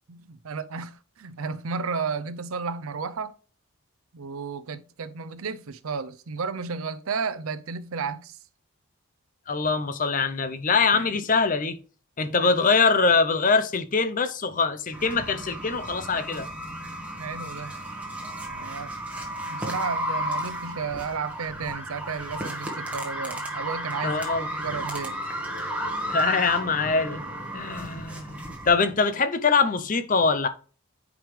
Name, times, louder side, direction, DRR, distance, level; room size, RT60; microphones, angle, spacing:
voice 1, 0.1-3.4 4.1-8.4 10.9-11.1 12.4-12.5 17.2-17.9 18.5-18.9 19.5-25.2, right 5 dB, 75° right, 0.6 m, -33 dB
voice 2, 9.5-11.8 12.2-16.5 24.0-24.5 26.1-27.2 27.5-30.5, left 4 dB, 35° left, 0.6 m, -23 dB
sound 1, 14.9-28.7, right 1 dB, 5° right, 1.4 m, -33 dB
9.2 x 5.0 x 3.2 m
head